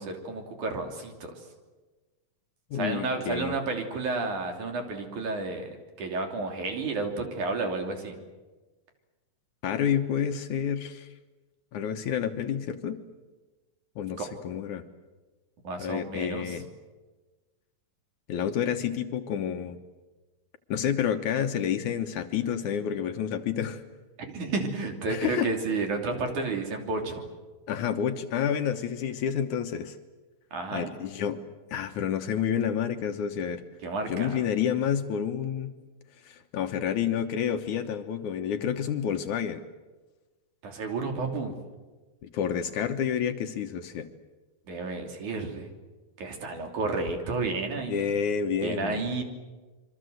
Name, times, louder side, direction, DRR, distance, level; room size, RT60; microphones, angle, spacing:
voice 1, 0.0-1.3 2.7-5.7 6.0-8.1 14.2-14.3 15.6-16.6 24.3-27.3 30.5-30.9 33.8-34.3 40.6-41.5 44.7-45.7 46.2-48.2 48.6-49.2, right 3 dB, 60° right, 4 dB, 4.4 m, -31 dB
voice 2, 2.7-3.6 9.6-11.1 11.7-13.0 14.0-14.8 15.8-16.7 18.3-19.8 20.7-23.8 25.1-25.5 27.7-30.0 30.7-31.4 31.7-33.6 34.1-35.7 36.2-39.6 42.2-44.1 47.9-49.0, left 8 dB, 65° left, 7 dB, 2.4 m, -29 dB
27.0 x 24.0 x 7.9 m, 1.2 s
omnidirectional pair, 4.0 m